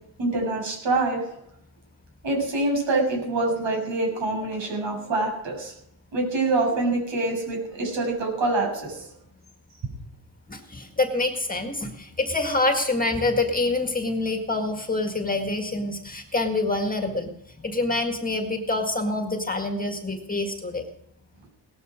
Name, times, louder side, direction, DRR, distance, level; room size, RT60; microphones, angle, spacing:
voice 1, 0.2-1.2 2.2-5.7 6.1-9.1, right 2 dB, 70° right, 1 dB, 7.5 m, -25 dB
voice 2, 10.5-17.3 17.6-20.8, left 2 dB, 20° left, 5 dB, 1.9 m, -26 dB
18.0 x 14.0 x 5.1 m, 0.77 s
wide cardioid pair, 140°, 47 cm